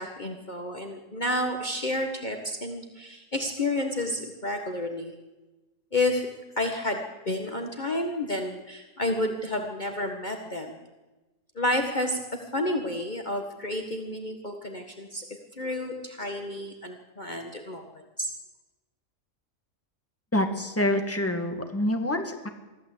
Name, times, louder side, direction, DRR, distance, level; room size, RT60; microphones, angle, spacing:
voice 1, 0.0-5.1 5.9-6.3 6.6-10.8 11.6-15.3 15.5-18.3, left 1 dB, 30° left, 4 dB, 1.8 m, -30 dB
voice 2, 20.3-22.5, left 1 dB, 10° left, 5 dB, 2.2 m, -26 dB
24.0 x 15.0 x 8.5 m, 1.1 s
omnidirectional pair, 1.5 m